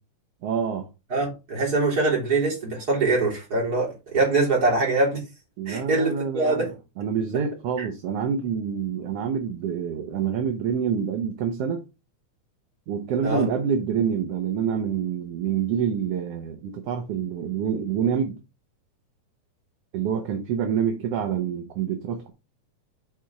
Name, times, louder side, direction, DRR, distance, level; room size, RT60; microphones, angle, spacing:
voice 1, 0.4-0.9 5.6-6.7 7.0-11.8 12.9-18.4 19.9-22.3, right 7 dB, 65° right, 1.8 m, -27 dB
voice 2, 1.1-5.2 5.7-6.7 7.3-7.4 7.8-7.9 13.2-13.5, right 3 dB, 30° right, 3.6 m, -23 dB
7.2 x 4.5 x 4.7 m
omnidirectional pair, 3.5 m